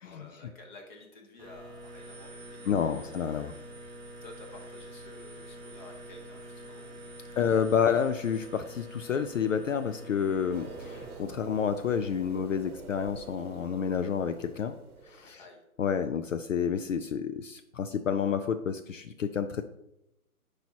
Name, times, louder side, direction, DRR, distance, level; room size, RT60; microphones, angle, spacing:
voice 1, 0.0-3.1 4.2-7.5 15.3-15.6, left 2 dB, 30° left, 3 dB, 1.3 m, -52 dB
sound 1, 1.4-11.2, right 1 dB, 10° right, 1.6 m, -46 dB
voice 2, 2.7-3.5 7.4-14.7 15.1-15.4 15.8-19.6, left 7 dB, 60° left, 10 dB, 0.5 m, -29 dB
sound 2, 10.5-15.4, right 4 dB, 75° right, 0.9 m, -46 dB
8.7 x 4.8 x 2.8 m, 0.86 s
figure-of-eight pair, 140°, 44 cm